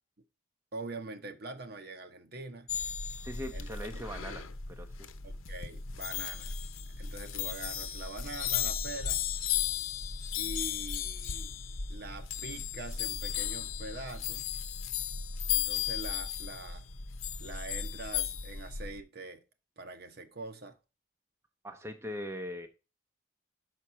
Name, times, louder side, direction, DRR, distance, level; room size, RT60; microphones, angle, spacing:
voice 1, 0.7-2.7 3.5-3.7 5.2-6.6 7.0-9.2 10.4-11.5 11.9-14.4 15.5-16.9 17.4-19.4 19.8-20.8, right 2 dB, 50° right, 0.9 m, -44 dB
sound 1, 2.7-19.0, left 8 dB, 90° left, 0.8 m, -35 dB
voice 2, 3.2-5.0 21.6-22.7, equal, 15° right, 0.6 m, -40 dB
6.1 x 5.9 x 5.6 m
head